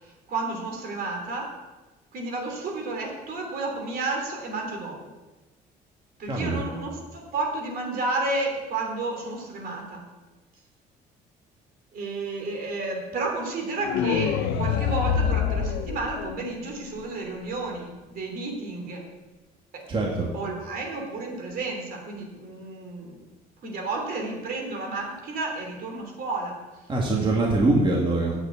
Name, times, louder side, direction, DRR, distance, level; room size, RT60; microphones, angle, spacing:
voice 1, 0.0-1.5 2.1-5.1 6.2-10.0 11.9-19.1 19.7-19.9 20.3-23.2 23.6-26.6, right 3 dB, 60° right, 1 dB, 3.1 m, -31 dB
voice 2, 6.3-6.6 19.9-20.3 26.9-28.3, right 2 dB, 30° right, -2 dB, 2.0 m, -23 dB
sound 1, 13.8-16.8, left 8 dB, 90° left, 0.7 m, -26 dB
8.1 x 7.1 x 8.2 m, 1.2 s
cardioid pair, 110°, 17 cm